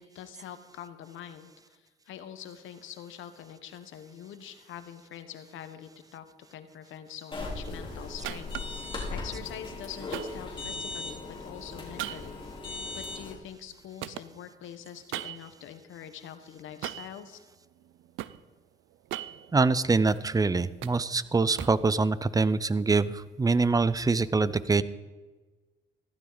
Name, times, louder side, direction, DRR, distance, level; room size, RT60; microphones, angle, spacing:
voice 1, 0.0-17.4, left 9 dB, 85° left, 10 dB, 1.1 m, -45 dB
sound 1, 7.3-13.3, left 2 dB, 25° left, 3.7 m, -38 dB
sound 2, 8.2-8.9 10.1-11.1 12.0-13.7 14.0-15.6 16.8-17.2 17.8-18.4 18.9-20.2 20.6-21.9, right 14 dB, 85° right, 0.5 m, -40 dB
voice 2, 19.5-24.8, right 3 dB, 20° right, 17 dB, 0.5 m, -24 dB
15.0 x 12.5 x 4.0 m, 1.3 s
cardioid pair, 90°, 20 cm